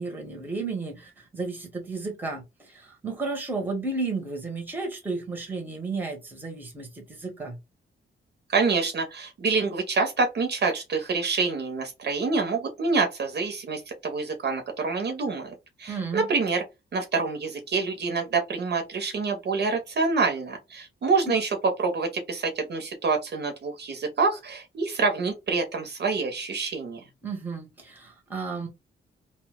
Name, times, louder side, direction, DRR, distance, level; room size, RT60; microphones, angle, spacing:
voice 1, 0.0-2.4 2.7-7.6 15.9-16.3 21.3-21.4 27.2-28.7, right 3 dB, 10° right, 0.7 m, -33 dB
voice 2, 8.5-16.6 16.9-21.5 21.8-27.0, right 4 dB, 50° right, 0.6 m, -27 dB
2.6 x 2.0 x 3.4 m
wide cardioid pair, 180°, 21 cm